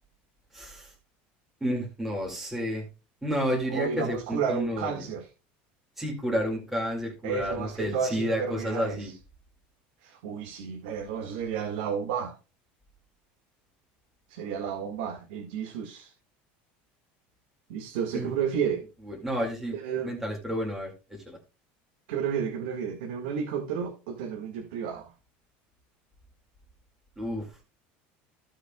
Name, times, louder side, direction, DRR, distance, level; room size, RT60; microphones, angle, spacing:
voice 1, 0.5-0.9 1.6-2.9 3.2-5.0 6.0-9.1 18.1-18.3 19.1-19.8 20.0-21.4 27.2-27.5, equal, 5° right, 2.3 m, -31 dB
voice 2, 3.7-5.3 7.2-9.1 10.0-12.4 14.3-16.1 17.7-18.9 19.7-20.1 22.1-25.1, right 7 dB, 85° right, 1.8 m, -32 dB
16.0 x 6.5 x 2.3 m
cardioid pair, 175°, 5 cm